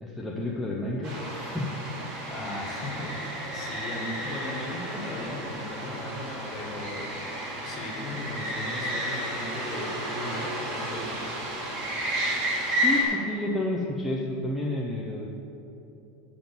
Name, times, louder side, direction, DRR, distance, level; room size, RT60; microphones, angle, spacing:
voice 1, 0.0-1.7 12.8-15.3, left 1 dB, 5° left, -4 dB, 0.6 m, -30 dB
sound 1, 1.0-13.0, equal, 40° right, 2.1 m, -32 dB
voice 2, 2.3-7.1 7.6-11.3, left 2 dB, 25° left, -2 dB, 1.5 m, -37 dB
7.2 x 6.0 x 7.0 m, 3.0 s
supercardioid pair, 170°, 0 cm